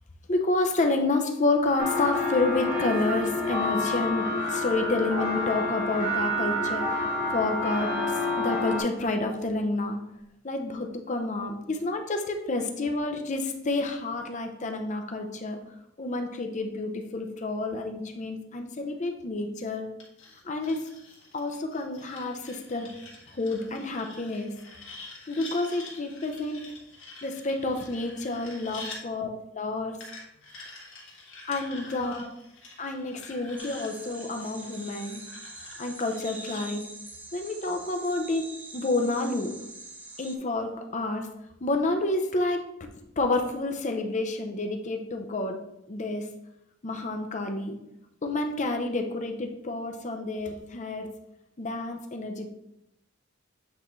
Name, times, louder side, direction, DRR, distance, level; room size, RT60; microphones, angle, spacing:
voice 1, 0.3-6.9 7.3-10.0 10.4-15.6 16.0-19.9 20.4-20.9 21.3-22.9 23.3-24.5 25.3-26.7 27.2-30.0 31.5-32.3 32.8-35.2 35.8-36.9 37.3-39.5 40.2-41.3 41.6-42.9 43.2-45.6 45.9-46.3 46.8-47.8 48.2-51.1 51.6-52.5, left 2 dB, 35° left, 5 dB, 0.6 m, -29 dB
sound 1, 1.8-8.8, left 2 dB, 40° right, 1.3 m, -28 dB
sound 2, 20.0-29.0 30.0-36.6, left 3 dB, 65° left, 1.7 m, -46 dB
sound 3, 33.6-40.4, right 2 dB, 10° right, 0.5 m, -44 dB
8.0 x 4.0 x 3.1 m, 0.84 s
head